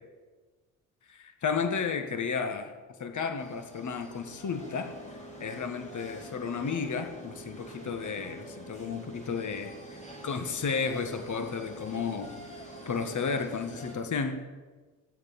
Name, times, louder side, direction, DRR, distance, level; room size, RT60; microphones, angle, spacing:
voice 1, 1.4-2.7 3.0-4.9 5.4-14.4, left 5 dB, 45° left, 7 dB, 1.6 m, -33 dB
sound 1, 3.4-14.0, right 1 dB, 15° left, 4.2 m, -46 dB
15.0 x 8.1 x 7.5 m, 1.3 s
hypercardioid pair, 50°, 41 cm